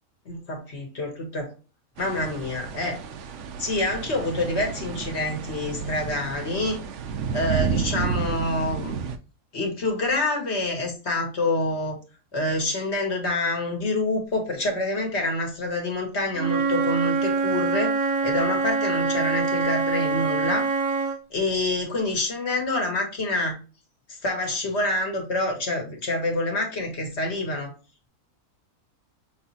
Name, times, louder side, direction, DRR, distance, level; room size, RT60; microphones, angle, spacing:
voice 1, 0.2-1.5 2.0-3.0 3.6-6.8 7.3-9.0 9.5-12.0 12.3-17.9 18.2-20.7 21.3-23.6 24.1-27.7, left 2 dB, 50° left, 1 dB, 1.6 m, -27 dB
sound 1, 2.0-9.2, right 6 dB, 65° right, 0.8 m, -31 dB
Wind instrument woodwind instrument, 16.4-21.2, right 4 dB, 85° right, 1.4 m, -24 dB
6.1 x 2.9 x 2.8 m, 0.33 s
omnidirectional pair, 1.6 m